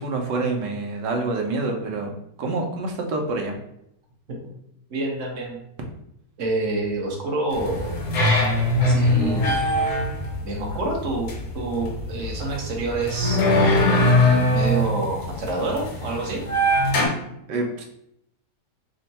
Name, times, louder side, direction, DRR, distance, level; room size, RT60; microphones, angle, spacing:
voice 1, 0.0-3.6 17.5-17.8, right 3 dB, 85° right, 2 dB, 1.4 m, -27 dB
voice 2, 4.9-5.6 6.4-8.0 8.8-9.6 10.4-13.4 14.5-16.4, right 2 dB, 50° right, -1 dB, 1.1 m, -27 dB
sound 1, 7.5-17.1, left 1 dB, 80° left, 1.5 m, -22 dB
3.6 x 2.2 x 4.0 m, 0.77 s
omnidirectional pair, 1.9 m